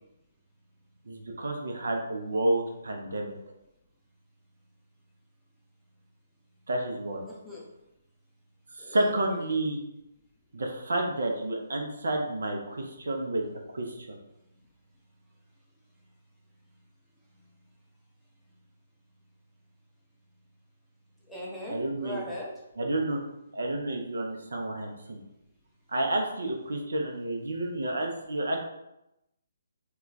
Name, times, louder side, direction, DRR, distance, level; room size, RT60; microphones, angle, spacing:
voice 1, 1.1-3.3 6.7-7.2 8.7-9.8 10.5-13.4 13.7-14.2 21.7-22.2 22.8-23.2 23.5-25.2 25.9-28.6, right 1 dB, 65° right, 1 dB, 0.5 m, -30 dB
voice 2, 7.3-7.7 8.8-9.1 21.3-22.5, equal, ahead, -7 dB, 0.6 m, -39 dB
2.2 x 2.2 x 3.8 m, 0.88 s
figure-of-eight pair, 135°, 0 cm